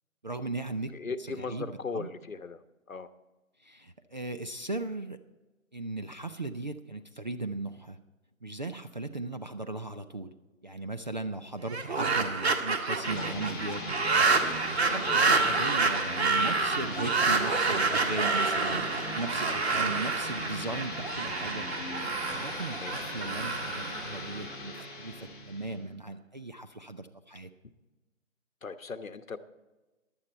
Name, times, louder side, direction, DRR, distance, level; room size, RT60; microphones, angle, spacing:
voice 1, 0.2-2.1 3.6-5.2 5.7-8.0 8.4-10.3 10.6-13.9 14.5-21.7 22.3-27.5, right 2 dB, 35° right, 9 dB, 0.5 m, -37 dB
voice 2, 0.9-2.6 2.9-3.1 14.9-15.2 19.8-20.1 22.8-23.1 28.6-29.4, left 4 dB, 80° left, 10 dB, 1.2 m, -38 dB
sound 1, 11.6-24.8, right 4 dB, 50° right, 1.7 m, -28 dB
sound 2, 13.0-25.9, left 3 dB, 5° left, 0.7 m, -40 dB
16.0 x 11.5 x 4.3 m, 1.1 s
figure-of-eight pair, 155°, 40 cm